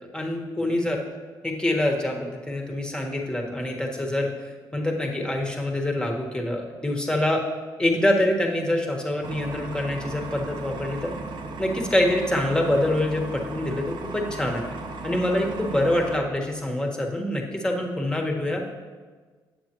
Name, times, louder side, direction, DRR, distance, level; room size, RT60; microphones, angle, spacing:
voice 1, 0.1-1.0 1.4-4.3 4.7-7.4 7.8-11.1 11.6-14.6 15.0-18.6, left 1 dB, 10° left, 1 dB, 1.4 m, -25 dB
sound 1, 9.2-16.2, right 3 dB, 60° right, 0.9 m, -36 dB
8.8 x 7.0 x 3.0 m, 1.4 s
supercardioid pair, 70°, 9 cm